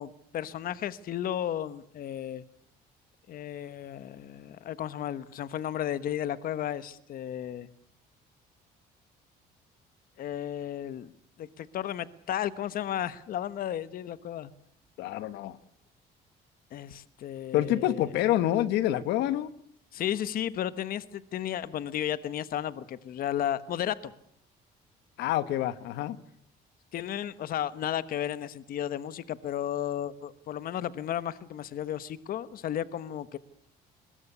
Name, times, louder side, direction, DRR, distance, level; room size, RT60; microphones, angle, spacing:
voice 1, 0.0-2.4 3.3-7.7 10.2-11.1 11.4-14.5 16.7-18.1 19.9-24.1 26.9-33.4, left 10 dB, 60° left, 1.2 m, -34 dB
voice 2, 15.0-15.6 17.5-19.5 25.2-26.2, left 13 dB, 85° left, 1.3 m, -27 dB
22.5 x 21.5 x 8.3 m
cardioid pair, 110°, 17 cm